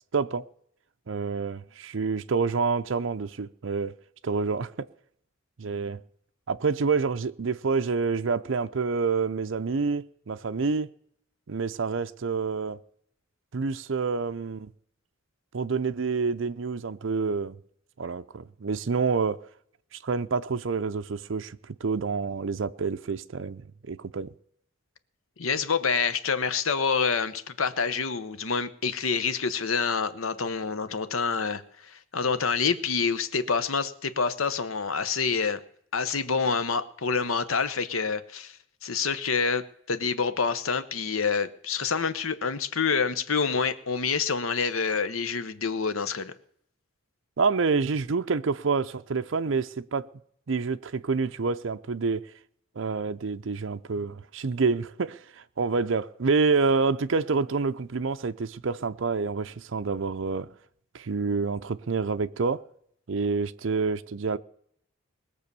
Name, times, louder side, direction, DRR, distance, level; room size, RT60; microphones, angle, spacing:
voice 1, 0.1-0.5 1.1-3.9 4.2-4.9 5.6-6.0 6.5-10.9 11.5-12.8 13.5-14.7 15.5-17.6 18.0-19.4 19.9-24.3 47.4-50.1 50.5-52.2 52.8-60.5 60.9-62.6 63.1-64.4, right 4 dB, 70° right, 0.5 m, -28 dB
voice 2, 25.4-35.6 35.9-46.3, left 5 dB, 85° left, 1.0 m, -27 dB
20.5 x 6.8 x 6.9 m
head